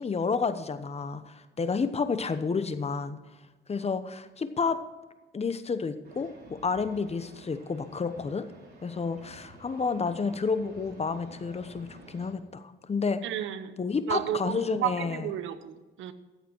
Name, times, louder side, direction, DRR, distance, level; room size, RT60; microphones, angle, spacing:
voice 1, 0.0-3.2 3.7-4.8 5.3-8.5 8.8-13.2 13.8-15.3, left 5 dB, 30° left, 11 dB, 1.0 m, -30 dB
sound 1, 6.0-12.3, right 2 dB, 55° right, 3.5 m, -51 dB
voice 2, 13.2-13.7 14.1-16.1, right 11 dB, 80° right, 12 dB, 0.9 m, -32 dB
13.5 x 8.1 x 4.6 m, 1.2 s
cardioid pair, 90°, 20 cm